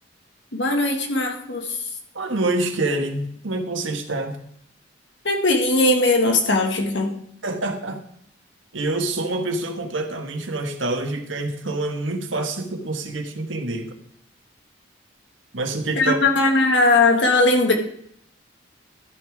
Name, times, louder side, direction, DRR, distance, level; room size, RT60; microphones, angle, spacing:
voice 1, 0.5-1.8 5.2-7.1 16.0-17.7, left 2 dB, 70° left, 3 dB, 1.9 m, -19 dB
voice 2, 2.1-4.4 7.4-8.0 8.7-14.0 15.5-16.2, right 2 dB, 90° right, 5 dB, 1.5 m, -26 dB
13.0 x 9.4 x 3.6 m, 0.69 s
head